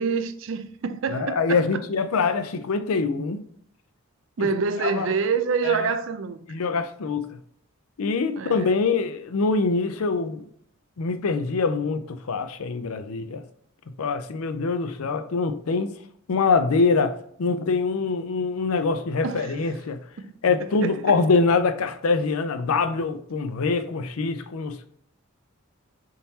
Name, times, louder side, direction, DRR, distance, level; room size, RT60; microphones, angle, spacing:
voice 1, 0.0-1.8 4.4-6.4 8.4-8.7 19.2-19.5 20.2-20.3 20.8-21.2, right 5 dB, 60° right, 0.4 m, -27 dB
voice 2, 1.1-3.4 4.4-4.5 4.8-5.1 5.6-5.9 6.5-7.4 8.0-10.4 11.0-13.4 14.0-15.9 16.3-20.0 20.4-24.9, left 4 dB, 75° left, 0.5 m, -24 dB
4.2 x 3.7 x 2.7 m
head